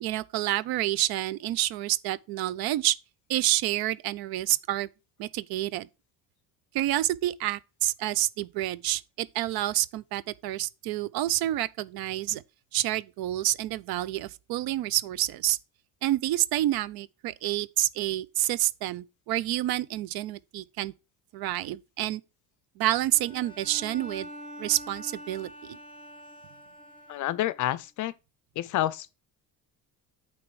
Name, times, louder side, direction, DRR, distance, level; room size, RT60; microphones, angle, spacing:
voice 1, 0.0-3.0 3.3-4.9 5.2-5.9 6.7-12.4 12.7-15.6 16.0-20.9 21.3-22.2 22.8-24.3 24.6-25.8, right 14 dB, 65° right, 0.5 m, -28 dB
Bowed string instrument, 23.1-27.7, equal, 20° right, 1.0 m, -45 dB
voice 2, 27.1-28.1 28.6-29.1, left 14 dB, 50° left, 0.4 m, -29 dB
8.6 x 3.1 x 4.6 m
cardioid pair, 120°, 39 cm